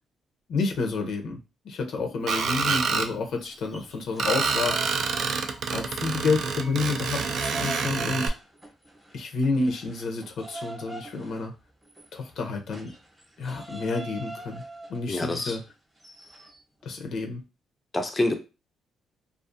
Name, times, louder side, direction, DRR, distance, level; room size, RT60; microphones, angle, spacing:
voice 1, 0.5-1.4 1.6-4.7 5.7-8.3 9.1-11.5 12.1-12.9 13.4-14.6 14.9-15.6 16.8-17.4, left 4 dB, 70° left, 4 dB, 0.5 m, -29 dB
Screech, 2.3-3.1 4.2-8.3, right 5 dB, 65° right, 0.3 m, -27 dB
sound 1, 3.3-6.0 6.3-16.6, right 2 dB, 15° right, 0.8 m, -43 dB
voice 2, 15.1-15.6 17.9-18.3, left 2 dB, 20° left, 5 dB, 0.4 m, -26 dB
2.4 x 2.4 x 2.5 m, 0.30 s
cardioid pair, 90°, 0 cm